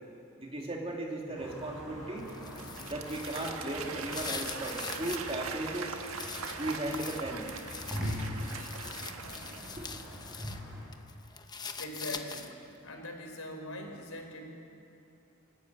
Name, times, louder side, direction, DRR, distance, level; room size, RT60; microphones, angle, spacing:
voice 1, 0.4-2.3 2.9-6.0 6.6-7.5 8.8-8.9 9.7-9.8, right 1 dB, 25° right, 0 dB, 2.7 m, -36 dB
sound 1, 1.4-10.9, equal, ahead, 6.6 m, -43 dB
sound 2, 2.2-5.3 5.7-10.6 10.9-12.7, left 5 dB, 20° left, 0.9 m, -43 dB
Applause / Crowd, 2.3-10.1, right 5 dB, 80° right, 1.5 m, -42 dB
voice 2, 11.8-12.6 12.8-14.5, left 1 dB, 85° left, 2 dB, 3.8 m, -42 dB
29.0 x 12.0 x 8.5 m, 2.8 s
head